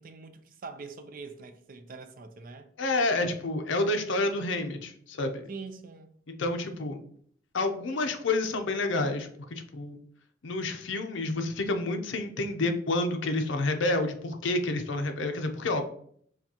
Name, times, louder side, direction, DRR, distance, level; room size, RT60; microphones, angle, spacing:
voice 1, 0.0-2.7 5.5-6.1, right 4 dB, 45° right, 0.4 m, -43 dB
voice 2, 2.8-5.5 6.4-7.0 7.5-10.0 10.4-15.8, left 2 dB, 65° left, 0.6 m, -29 dB
6.7 x 2.3 x 2.8 m
head